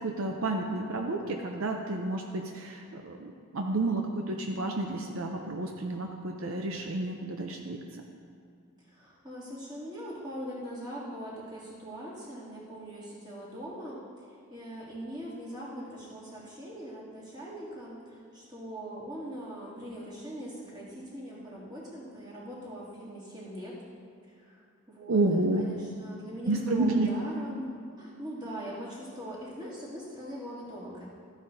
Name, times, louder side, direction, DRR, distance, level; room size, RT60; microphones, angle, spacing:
voice 1, 0.0-7.8 25.1-25.6 26.5-27.1, right 2 dB, 65° right, 2 dB, 0.6 m, -30 dB
voice 2, 8.8-23.8 24.2-24.6 24.9-27.7 28.0-31.1, equal, 20° right, -8 dB, 2.5 m, -41 dB
14.0 x 9.0 x 2.7 m, 2.4 s
head